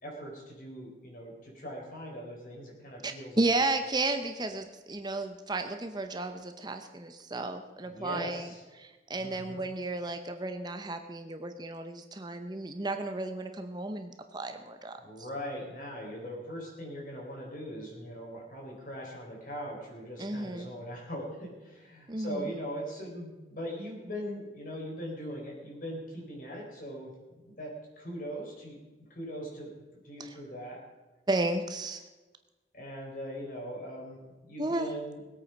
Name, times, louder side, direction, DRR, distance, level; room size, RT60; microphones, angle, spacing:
voice 1, 0.0-3.4 7.8-8.6 9.2-9.6 15.0-29.7 30.0-30.8 32.7-35.2, equal, 50° left, -1 dB, 4.4 m, -40 dB
voice 2, 3.0-8.5 8.8-14.9 20.2-20.7 22.1-22.5 30.2-30.3 31.3-32.0 34.6-34.9, right 2 dB, 25° right, 7 dB, 0.7 m, -33 dB
20.5 x 8.6 x 5.2 m, 1.2 s
head